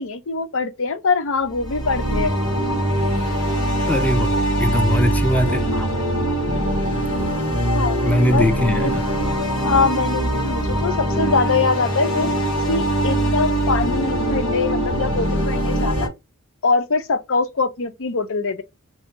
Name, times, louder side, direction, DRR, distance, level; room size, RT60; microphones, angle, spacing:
voice 1, 0.0-2.3 7.7-8.0 8.3-8.5 8.8-8.9 9.6-16.1 16.6-18.6, left 4 dB, 65° left, 0.6 m, -23 dB
sound 1, 1.5-16.1, right 1 dB, 80° left, 1.9 m, -22 dB
voice 2, 3.9-5.9 8.0-9.1, left 1 dB, 5° left, 0.6 m, -21 dB
3.2 x 2.7 x 4.4 m
head